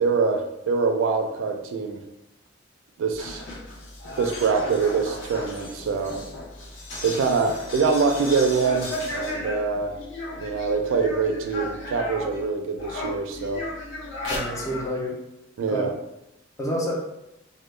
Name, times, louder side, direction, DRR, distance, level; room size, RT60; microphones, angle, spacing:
voice 1, 0.0-2.0 3.0-3.5 4.2-6.2 7.0-9.9 10.4-13.6 15.6-15.9, right 4 dB, 70° right, 4 dB, 0.3 m, -24 dB
sound 1, 3.1-12.5 12.8-14.9, left 1 dB, 65° left, 0.7 m, -35 dB
voice 2, 14.3-15.2 15.7-15.8 16.6-16.9, equal, 15° left, -2 dB, 0.4 m, -28 dB
2.1 x 2.0 x 3.0 m, 0.89 s
head